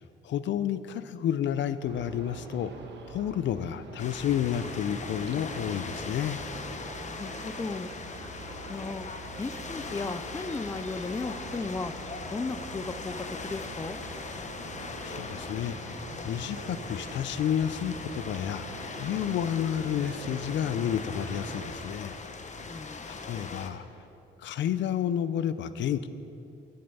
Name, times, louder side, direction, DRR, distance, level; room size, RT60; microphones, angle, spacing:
voice 1, 0.2-2.7 3.1-6.4 15.0-15.8 16.2-18.6 19.0-22.2 23.1-23.8 24.4-26.1, left 9 dB, 65° left, 13 dB, 0.5 m, -30 dB
sound 1, 1.8-21.7, right 4 dB, 65° right, 1.4 m, -45 dB
sound 2, 4.0-23.7, left 4 dB, 35° left, 1.0 m, -40 dB
voice 2, 7.0-7.9 8.7-9.1 9.4-11.9 12.3-14.0 22.7-23.0, left 3 dB, 15° left, 12 dB, 0.4 m, -35 dB
15.0 x 7.8 x 5.5 m, 2.8 s
cardioid pair, 90°, 20 cm